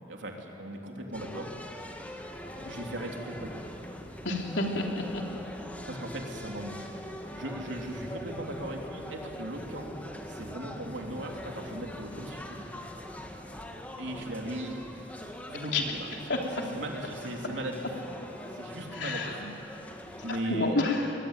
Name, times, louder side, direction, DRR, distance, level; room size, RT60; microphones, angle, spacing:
voice 1, 0.1-1.5 2.7-3.6 5.9-6.9 7.3-9.9 10.3-12.8 14.0-16.1 16.7-17.9 18.5-19.4 20.2-20.8, right 1 dB, 85° right, 1 dB, 3.5 m, -38 dB
sound 1, 1.1-20.4, equal, 10° left, 1.9 m, -42 dB
voice 2, 4.2-5.2 15.5-15.8 16.3-16.4 18.9-19.5 20.4-21.1, left 2 dB, 75° left, 0 dB, 3.5 m, -29 dB
25.5 x 21.5 x 9.2 m, 2.9 s
head